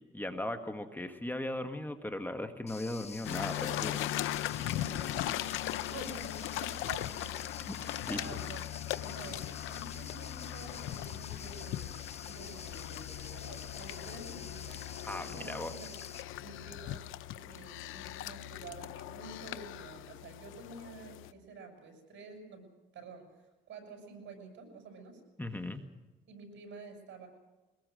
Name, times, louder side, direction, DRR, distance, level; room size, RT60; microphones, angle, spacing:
voice 1, 0.0-4.0 7.7-8.4 15.1-15.7 25.4-25.8, left 1 dB, 10° left, 6 dB, 1.6 m, -38 dB
sound 1, 2.7-16.2, left 6 dB, 30° left, 0.8 m, -48 dB
sound 2, 3.2-21.3, left 13 dB, 90° left, 0.8 m, -39 dB
voice 2, 4.4-7.4 7.7-12.0 12.3-16.1 16.4-17.0 17.3-22.7 22.9-25.2 26.3-27.3, right 3 dB, 70° right, 4 dB, 6.7 m, -49 dB
sound 3, 9.5-15.0, left 7 dB, 55° left, 3.5 m, -56 dB
23.0 x 20.5 x 6.4 m, 1.2 s
cardioid pair, 90°, 20 cm